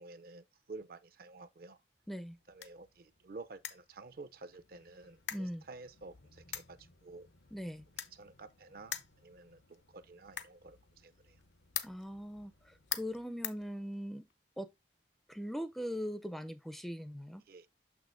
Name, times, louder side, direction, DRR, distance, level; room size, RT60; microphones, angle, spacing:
voice 1, 0.0-1.8 2.5-7.3 8.1-11.4 17.5-17.7, right 3 dB, 50° right, 0.5 m, -51 dB
sound 1, 2.0-14.3, left 11 dB, 80° left, 0.8 m, -47 dB
voice 2, 5.3-5.6 7.5-7.9 11.8-14.2 14.6-14.7 15.3-17.4, equal, ahead, 0.4 m, -40 dB
6.7 x 6.1 x 2.5 m
head